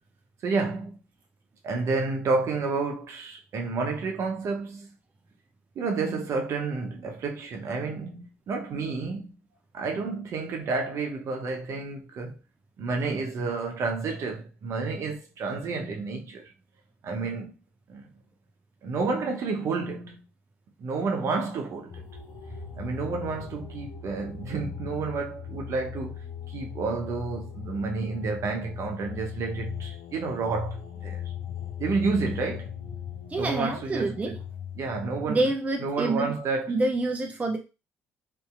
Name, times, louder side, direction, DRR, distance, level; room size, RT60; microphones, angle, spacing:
voice 1, 0.4-1.0 1.6-4.9 5.8-9.3 9.7-12.4 12.8-16.4 17.0-17.5 17.9-18.1 18.8-20.2 20.8-22.0 22.8-26.2 26.5-31.3 31.8-32.7 33.4-34.4 34.8-35.5 35.8-36.7, right 4 dB, 50° right, 0.8 m, -30 dB
sound 1, 21.9-35.3, left 8 dB, 65° left, 0.7 m, -39 dB
voice 2, 33.3-34.4 35.3-36.4 36.7-37.6, right 2 dB, 25° right, 0.5 m, -27 dB
2.7 x 2.7 x 2.4 m
hypercardioid pair, 50°, 6 cm